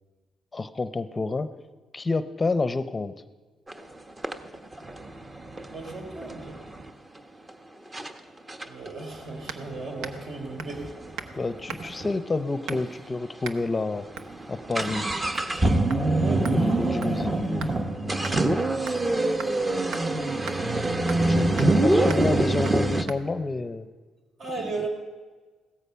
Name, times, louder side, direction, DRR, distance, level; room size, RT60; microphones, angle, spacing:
voice 1, 0.5-1.5 1.9-3.1 11.3-14.1 14.5-15.1 16.5-17.7 21.3-23.9 24.6-24.9, left 3 dB, 25° left, 13 dB, 0.7 m, -29 dB
sound 1, 3.7-3.8 4.2-6.9 7.5-7.6 7.9-8.1 8.5-12.2 12.4-12.5 12.7-12.8 13.4-13.6 13.9-23.0, right 2 dB, 25° right, 1.2 m, -25 dB
voice 2, 5.7-6.6 8.6-11.1 16.2-17.7 24.4-24.9, right 3 dB, 60° right, 3 dB, 3.9 m, -37 dB
sound 2, 9.5-9.7 10.0-10.3 10.6-10.8 11.2-11.4 11.7-12.0 12.7-13.0 13.4-13.6 14.1-14.3 14.8-15.0 15.3-15.6 15.9-16.0 16.4-17.8 18.2-18.4 18.9-19.1 19.4-19.5 19.9-20.0 20.5-20.6 21.1-21.3 21.6-21.8 22.1-22.3 22.6-22.8 23.1-23.2, right 6 dB, 85° right, 1.0 m, -39 dB
16.0 x 13.5 x 5.7 m, 1.4 s
cardioid pair, 90°, 0 cm